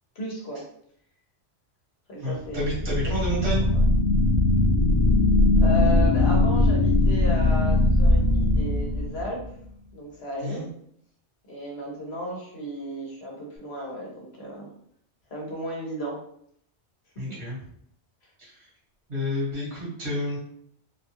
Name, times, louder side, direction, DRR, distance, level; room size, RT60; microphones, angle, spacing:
voice 1, 0.1-0.6 2.1-2.7 3.3-3.4 3.7-3.8 5.6-9.4 9.9-10.6 11.5-14.7 15.3-16.2 17.2-17.4, left 1 dB, 65° left, -2 dB, 1.2 m, -34 dB
voice 2, 2.2-3.7 10.4-10.6 17.2-17.6 18.4-18.5 19.1-20.4, equal, 70° right, -7 dB, 1.8 m, -29 dB
sound 1, 2.5-9.5, left 2 dB, 15° left, 0.7 m, -20 dB
3.6 x 2.4 x 2.9 m, 0.68 s
omnidirectional pair, 1.2 m